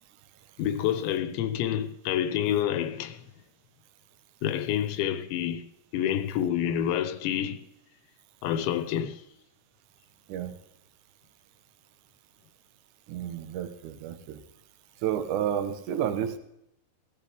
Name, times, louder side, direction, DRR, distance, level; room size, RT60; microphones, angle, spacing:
voice 1, 0.6-3.2 4.4-5.6 5.9-7.6 8.4-9.2, left 10 dB, 85° left, 3.3 m, -28 dB
voice 2, 13.1-14.4 15.0-16.4, right 9 dB, 70° right, 2.0 m, -31 dB
19.0 x 13.0 x 3.5 m
omnidirectional pair, 5.1 m